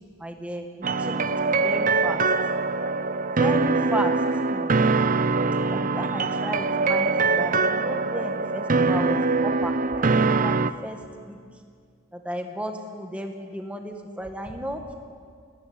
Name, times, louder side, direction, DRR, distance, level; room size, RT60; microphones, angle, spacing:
voice 1, 0.2-2.2 3.4-4.2 4.5-4.7 5.7-11.4 12.1-14.8, equal, 5° right, 3 dB, 1.8 m, -34 dB
sound 1, 0.8-10.7, right 3 dB, 35° right, 0.6 m, -23 dB
30.0 x 15.0 x 9.7 m, 2.1 s
head